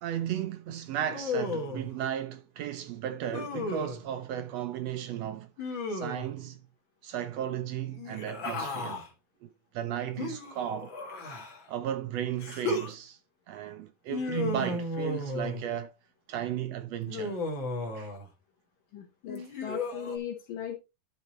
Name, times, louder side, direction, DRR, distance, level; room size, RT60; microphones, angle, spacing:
voice 1, 0.0-6.6 7.0-9.0 9.4-9.5 9.7-10.9 11.7-13.2 13.5-15.9 16.3-17.4 17.9-18.1 19.4-19.5, right 10 dB, 80° right, 1.5 m, -35 dB
Human voice, 1.1-1.9 3.3-4.0 5.6-6.4 7.9-9.1 10.2-11.7 12.4-12.9 14.1-15.7 17.1-18.3 19.3-20.2, left 2 dB, 40° left, 2.3 m, -34 dB
voice 2, 18.9-20.8, left 8 dB, 80° left, 2.9 m, -38 dB
12.0 x 4.2 x 4.2 m
omnidirectional pair, 3.8 m